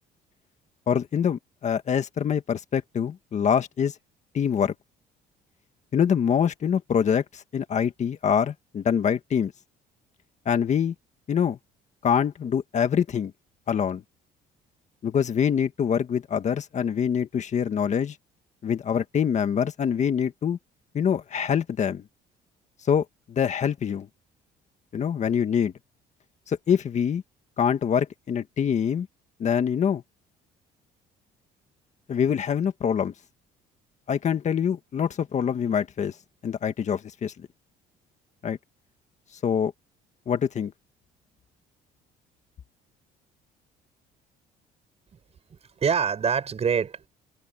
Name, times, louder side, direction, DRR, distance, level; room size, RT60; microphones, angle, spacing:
voice 1, 0.9-3.9 4.3-4.7 5.9-9.5 10.4-10.9 11.3-11.6 12.0-13.3 13.7-14.0 15.0-18.2 18.6-20.6 20.9-22.0 22.9-24.1 24.9-25.7 26.5-27.2 27.6-29.1 29.4-30.0 32.1-33.1 34.1-36.2 36.4-37.3 38.4-38.6 39.4-39.7 40.3-40.7, left 8 dB, 45° left, 1.8 m, -25 dB
voice 2, 45.5-47.1, right 6 dB, 40° right, 6.5 m, -25 dB
open air
cardioid pair, 110°, 17 cm